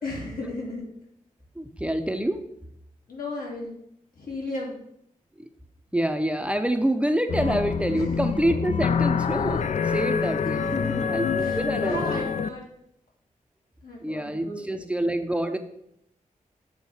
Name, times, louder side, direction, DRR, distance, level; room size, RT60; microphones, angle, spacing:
voice 1, 0.0-0.9 3.1-3.7 4.1-4.8 7.9-8.2 10.6-11.1 11.4-12.7 13.8-14.9, left 2 dB, 85° left, -4 dB, 2.7 m, -34 dB
voice 2, 1.6-2.4 5.4-5.5 5.9-10.6 11.1-12.3 14.0-15.6, right 1 dB, 10° right, 7 dB, 0.6 m, -27 dB
sound 1, 7.3-12.5, left 6 dB, 55° left, 0.4 m, -26 dB
8.1 x 3.7 x 5.5 m, 0.75 s
wide cardioid pair, 90°, 14 cm